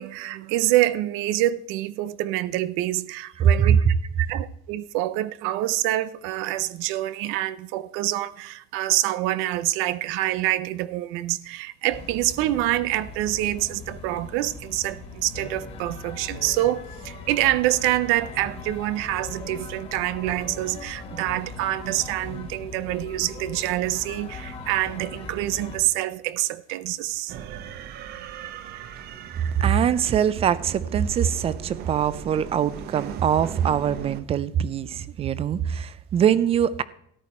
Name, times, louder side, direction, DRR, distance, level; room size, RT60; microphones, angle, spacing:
voice 1, 0.0-3.8 4.2-27.3, right 15 dB, 85° right, 0.6 m, -26 dB
sound 1, 11.9-25.8, left 4 dB, 30° left, 1.8 m, -40 dB
sound 2, 27.3-34.2, right 9 dB, 50° right, 0.8 m, -39 dB
voice 2, 29.6-36.8, right 9 dB, 30° right, 0.4 m, -23 dB
13.5 x 10.0 x 4.3 m
cardioid pair, 165°, 20 cm